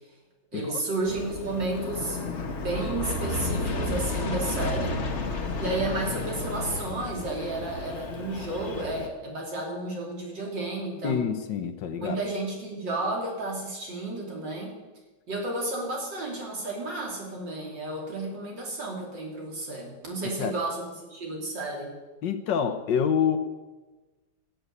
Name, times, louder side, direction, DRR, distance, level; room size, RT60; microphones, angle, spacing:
voice 1, 0.5-2.2 2.6-5.0 5.6-11.3 12.0-14.8 15.3-21.9, right 2 dB, 65° right, -1 dB, 3.8 m, -32 dB
Aircraft, 1.1-9.1, left 2 dB, 40° left, 1.5 m, -32 dB
voice 2, 11.0-12.2 20.2-20.5 22.2-23.4, left 7 dB, 65° left, 10 dB, 1.5 m, -27 dB
16.5 x 7.9 x 8.2 m, 1.2 s
omnidirectional pair, 2.1 m